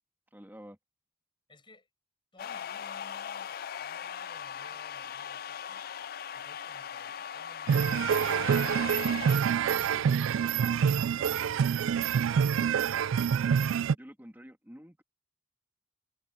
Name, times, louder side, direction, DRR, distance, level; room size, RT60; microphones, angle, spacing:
voice 1, 0.3-0.8 13.9-15.0, equal, 10° right, 2.4 m, -49 dB
voice 2, 1.5-1.9 2.3-5.8 6.3-12.8, left 1 dB, 25° left, 6.6 m, -59 dB
sound 1, 2.4-9.4, left 8 dB, 45° left, 0.3 m, -39 dB
sound 2, 7.7-13.9, right 7 dB, 80° right, 0.3 m, -26 dB
head